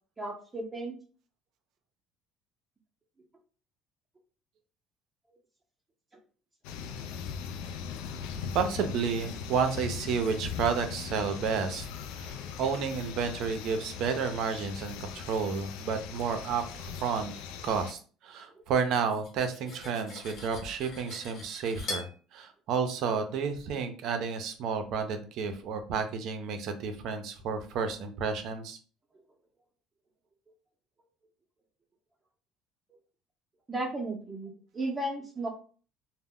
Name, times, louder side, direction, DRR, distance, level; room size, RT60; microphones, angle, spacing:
voice 1, 0.2-1.0 33.7-35.5, right 2 dB, 20° right, 1 dB, 0.6 m, -34 dB
sound 1, 6.6-17.9, left 7 dB, 85° left, 0.3 m, -39 dB
voice 2, 8.5-11.9 12.2-17.3 17.6-28.8, right 6 dB, 65° right, 7 dB, 0.5 m, -31 dB
Cutlery silverware, 18.9-22.1, left 2 dB, 55° left, 1.0 m, -42 dB
2.0 x 2.0 x 3.6 m, 0.40 s
cardioid pair, 105°, 0 cm